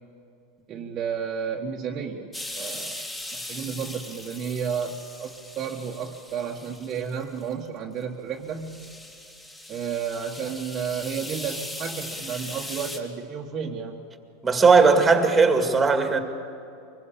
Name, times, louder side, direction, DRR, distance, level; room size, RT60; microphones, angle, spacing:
voice 1, 0.7-2.3 2.5-8.8 9.7-14.0, right 7 dB, 30° right, 1.4 m, -32 dB
sound 1, 2.3-7.5 8.0-8.1 8.5-13.0, left 1 dB, 10° left, 2.3 m, -39 dB
voice 2, 14.4-16.2, right 4 dB, 10° right, 2.1 m, -18 dB
24.5 x 21.5 x 8.5 m
supercardioid pair, 150°, 0 cm